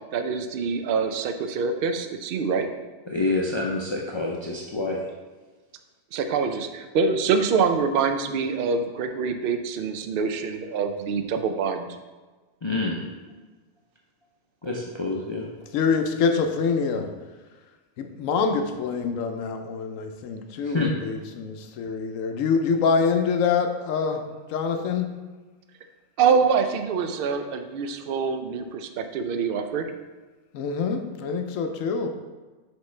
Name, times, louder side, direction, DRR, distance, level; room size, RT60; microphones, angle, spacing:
voice 1, 0.1-2.7 6.1-12.0 26.2-29.9, right 5 dB, 60° right, 7 dB, 0.6 m, -25 dB
voice 2, 3.1-5.1 12.6-13.0 14.6-15.5 20.6-20.9, left 3 dB, 40° left, -2 dB, 0.4 m, -27 dB
voice 3, 15.7-17.1 18.0-25.1 30.5-32.1, left 5 dB, 80° left, 6 dB, 1.0 m, -25 dB
6.1 x 4.9 x 3.2 m, 1.3 s
omnidirectional pair, 1.3 m